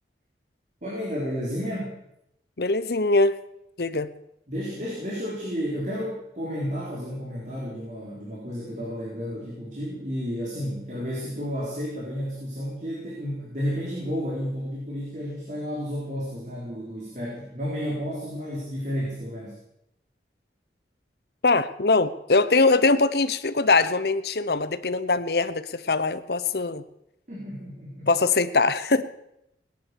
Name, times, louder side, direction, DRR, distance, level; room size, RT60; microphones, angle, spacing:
voice 1, 0.8-2.0 4.5-19.6 27.3-28.1, equal, 45° right, -4 dB, 4.3 m, -32 dB
voice 2, 2.6-3.4 3.8-4.1 21.4-26.8 28.1-29.0, left 3 dB, 60° left, 13 dB, 0.9 m, -22 dB
18.5 x 10.5 x 7.0 m, 0.80 s
head